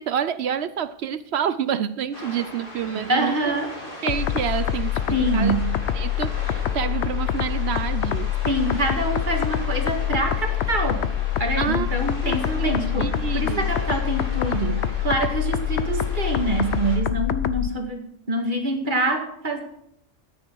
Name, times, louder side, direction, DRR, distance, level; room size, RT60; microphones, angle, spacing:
voice 1, 0.0-3.4 4.0-5.6 5.9-8.3 11.6-11.9 12.2-12.7 13.0-13.7, right 9 dB, 65° right, 14 dB, 0.8 m, -28 dB
sound 1, 2.1-17.0, left 1 dB, 45° left, 3.8 m, -39 dB
voice 2, 2.9-3.8 5.1-5.7 8.4-11.1 11.4-18.0 18.3-19.6, right 1 dB, 40° right, 3 dB, 2.1 m, -25 dB
sound 2, 4.1-17.7, left 11 dB, 65° left, 0.9 m, -25 dB
13.0 x 9.9 x 4.6 m, 0.74 s
omnidirectional pair, 1.3 m